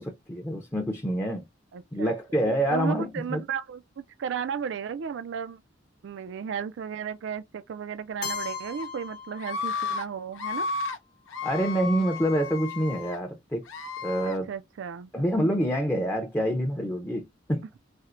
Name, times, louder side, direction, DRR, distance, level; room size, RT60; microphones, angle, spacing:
voice 1, 0.0-1.4 1.9-3.4 11.4-13.6 14.0-14.5 15.1-17.7, equal, 10° left, 0.5 m, -27 dB
voice 2, 1.7-2.1 2.7-5.6 6.0-10.7 14.2-15.1, right 7 dB, 65° right, 0.3 m, -34 dB
Keyboard (musical), 8.2-10.2, left 5 dB, 50° left, 0.9 m, -37 dB
Screaming, 8.3-8.9 9.4-10.0 10.3-11.0 11.3-13.2 13.7-14.4, left 4 dB, 90° left, 0.8 m, -34 dB
4.2 x 2.1 x 2.5 m
head